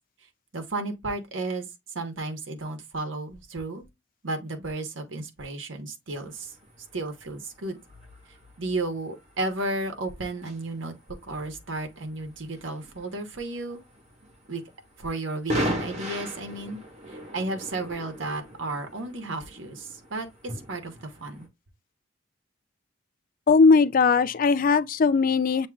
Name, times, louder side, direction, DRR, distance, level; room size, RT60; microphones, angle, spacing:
voice 1, 0.5-3.8 4.2-6.5 6.9-7.8 8.6-10.9 11.3-13.8 14.5-14.6 15.0-16.8 17.1-21.5, right 2 dB, 70° right, 1.1 m, -33 dB
sound 1, 6.1-21.5, equal, 35° right, 1.8 m, -39 dB
voice 2, 23.5-25.7, left 4 dB, 45° left, 0.4 m, -19 dB
7.2 x 2.9 x 2.3 m
head